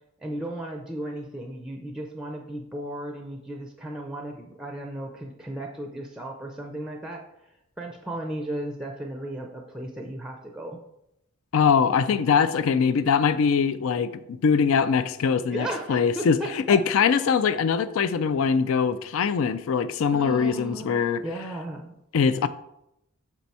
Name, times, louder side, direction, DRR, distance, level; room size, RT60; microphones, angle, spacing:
voice 1, 0.2-7.2 7.8-10.8 15.5-16.8 20.1-21.9, right 1 dB, 5° right, 2 dB, 0.5 m, -35 dB
voice 2, 11.5-16.4 16.7-21.2 22.1-22.5, left 6 dB, 65° left, 12 dB, 0.4 m, -22 dB
6.0 x 4.6 x 4.1 m, 0.82 s
head